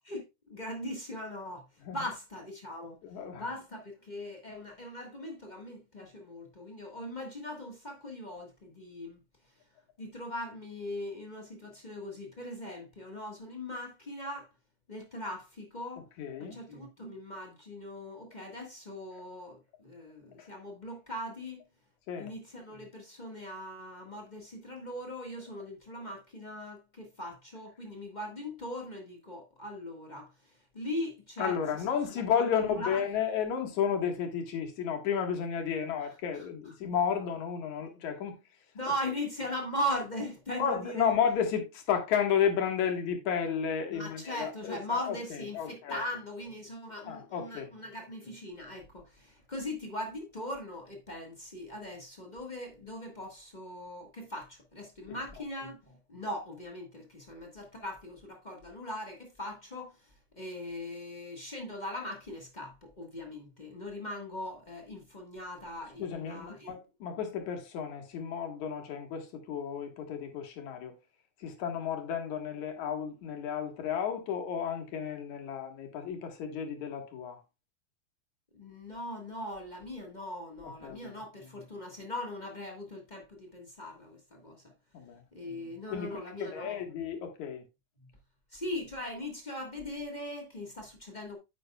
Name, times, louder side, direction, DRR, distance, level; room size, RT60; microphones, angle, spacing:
voice 1, 0.0-3.0 3.4-9.2 10.0-14.5 14.9-16.1 16.4-21.6 22.2-31.6 32.3-33.2 36.3-36.5 38.7-41.2 43.9-66.7 78.5-84.6 85.3-86.8 88.5-91.4, left 1 dB, 35° left, 0.7 m, -40 dB
voice 2, 3.0-3.4 16.2-16.6 20.4-20.5 22.1-22.3 31.4-38.4 40.6-45.2 45.5-46.0 47.1-47.7 55.1-55.2 66.0-70.9 71.4-77.4 80.8-81.1 84.9-85.2 85.9-87.6, left 7 dB, 75° left, 2.9 m, -32 dB
9.4 x 8.1 x 2.3 m
omnidirectional pair, 3.4 m